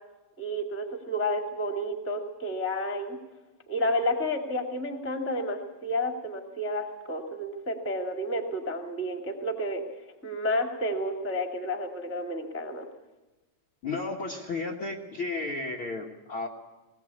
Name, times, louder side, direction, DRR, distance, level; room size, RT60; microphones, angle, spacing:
voice 1, 0.4-3.2 3.7-9.8 10.2-12.9, left 1 dB, 5° left, 3 dB, 1.8 m, -31 dB
voice 2, 13.8-16.5, left 3 dB, 50° left, 0 dB, 1.7 m, -33 dB
20.0 x 19.0 x 8.5 m, 1.1 s
omnidirectional pair, 3.9 m